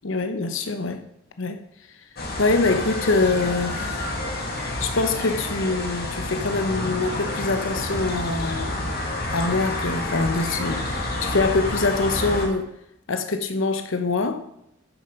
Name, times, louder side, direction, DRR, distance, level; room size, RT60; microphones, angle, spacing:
voice 1, 0.0-1.0 1.4-1.6 2.4-4.2 4.6-8.9 9.3-12.7 13.1-14.4, left 3 dB, 80° left, 7 dB, 0.9 m, -24 dB
sound 1, 2.2-12.5, left 2 dB, 55° left, 2.1 m, -29 dB
10.0 x 6.9 x 5.3 m, 0.79 s
head